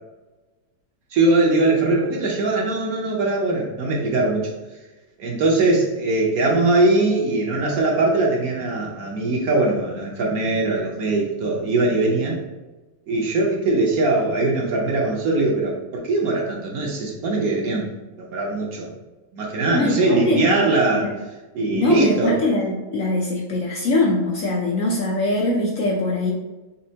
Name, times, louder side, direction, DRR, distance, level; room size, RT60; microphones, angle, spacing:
voice 1, 1.1-4.5 5.2-12.4 13.1-17.9 18.2-18.9 19.3-21.1 21.5-22.4, right 2 dB, 65° right, -1 dB, 1.1 m, -21 dB
voice 2, 19.7-20.6 20.9-21.1 21.7-26.3, left 2 dB, 65° left, -2 dB, 0.8 m, -22 dB
4.2 x 3.6 x 2.7 m, 1.2 s
omnidirectional pair, 1.9 m